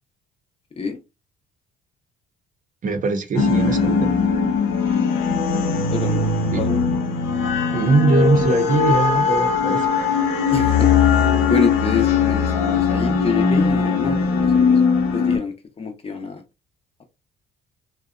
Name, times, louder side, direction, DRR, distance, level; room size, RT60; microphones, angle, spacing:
voice 1, 2.8-4.1 6.5-6.6 7.7-9.9, right 4 dB, 40° right, 0.6 m, -21 dB
sound 1, 3.3-15.4, left 5 dB, 90° left, 0.6 m, -19 dB
voice 2, 5.9-6.9 10.5-10.9 11.5-14.9 15.1-16.4, left 4 dB, 30° left, 0.6 m, -27 dB
2.6 x 2.1 x 2.4 m
supercardioid pair, 80°, 20 cm